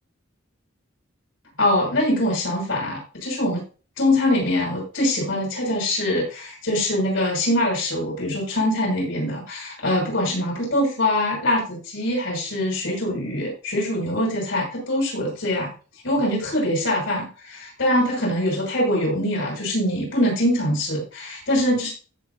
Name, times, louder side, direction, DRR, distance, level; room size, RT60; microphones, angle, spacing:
voice 1, 1.6-3.6 4.0-15.7 16.0-21.9, left 1 dB, 75° left, -3 dB, 6.7 m, -23 dB
17.0 x 6.7 x 2.8 m, 0.35 s
head